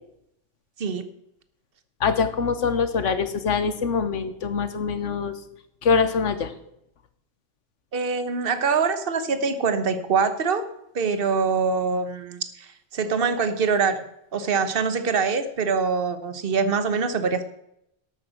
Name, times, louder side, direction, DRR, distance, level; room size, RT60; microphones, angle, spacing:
voice 1, 2.0-5.3 5.8-6.5, left 5 dB, 75° left, 11 dB, 1.4 m, -24 dB
voice 2, 7.9-10.7 10.9-14.0 14.3-17.4, right 5 dB, 50° right, 10 dB, 1.3 m, -24 dB
12.5 x 8.8 x 6.5 m, 0.79 s
omnidirectional pair, 1.3 m